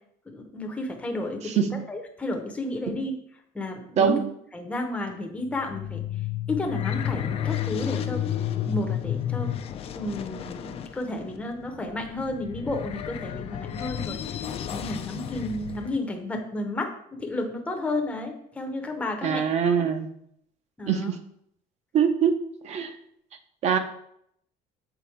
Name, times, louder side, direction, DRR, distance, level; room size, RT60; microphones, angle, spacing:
voice 1, 0.3-3.1 3.5-4.2 4.5-6.0 6.5-8.2 8.6-9.6 9.9-19.9 20.8-21.1, left 2 dB, 10° left, 3 dB, 0.7 m, -32 dB
voice 2, 1.4-1.8 2.9-3.0 4.0-4.2 19.2-20.1 20.9-21.2 21.9-22.3 22.6-22.9 23.6-23.8, right 7 dB, 45° right, 8 dB, 0.7 m, -23 dB
sound 1, 5.5-16.0, left 10 dB, 40° left, 0.4 m, -32 dB
6.9 x 4.1 x 4.5 m, 0.70 s
cardioid pair, 165°, 16 cm